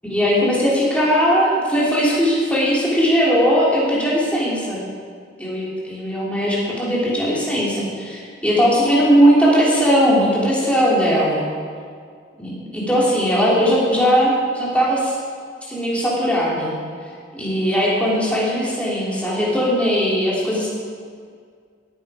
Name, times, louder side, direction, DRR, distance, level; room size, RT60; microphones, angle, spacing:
voice 1, 0.0-4.8 5.4-11.4 12.4-15.1 15.7-16.7 17.3-20.7, equal, 5° left, -6 dB, 3.2 m, -19 dB
17.5 x 9.2 x 5.0 m, 2.1 s
head